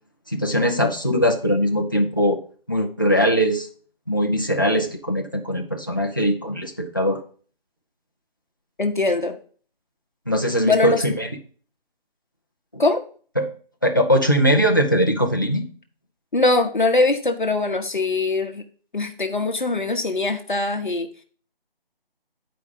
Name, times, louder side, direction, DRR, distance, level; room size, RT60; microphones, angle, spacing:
voice 1, 0.3-2.4 2.7-3.7 4.1-7.2 10.3-11.3 12.7-12.8 13.4-13.5 13.8-15.7, equal, 20° left, 3 dB, 0.6 m, -21 dB
voice 2, 8.8-9.4 10.6-11.0 12.8-13.0 16.3-18.6 18.9-21.1, left 2 dB, 55° left, 5 dB, 1.0 m, -21 dB
8.9 x 4.8 x 5.1 m, 0.42 s
figure-of-eight pair, 165°, 30 cm